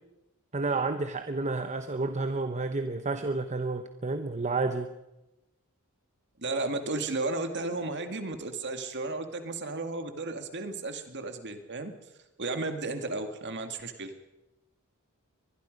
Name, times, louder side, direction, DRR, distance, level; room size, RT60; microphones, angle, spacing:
voice 1, 0.5-4.9, right 3 dB, 35° right, 9 dB, 0.9 m, -30 dB
voice 2, 6.4-11.9 12.4-14.1, right 2 dB, 55° right, 7 dB, 2.1 m, -34 dB
23.5 x 20.5 x 5.3 m, 0.96 s
head